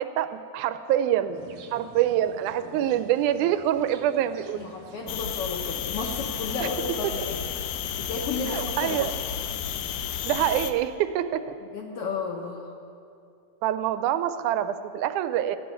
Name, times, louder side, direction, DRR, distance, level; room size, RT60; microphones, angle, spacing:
voice 1, 0.0-1.4 1.7-4.7 6.6-6.7 7.0-7.1 8.5-9.1 10.3-11.4 13.6-15.6, right 11 dB, 90° right, 11 dB, 2.1 m, -25 dB
sound 1, 1.3-7.0, right 7 dB, 75° right, 1.4 m, -48 dB
voice 2, 4.5-7.4 8.0-9.1 11.7-12.6, left 4 dB, 65° left, 1 dB, 1.5 m, -33 dB
sound 2, 5.1-10.7, left 9 dB, 85° left, 2.0 m, -32 dB
13.5 x 6.3 x 9.3 m, 2.6 s
omnidirectional pair, 3.4 m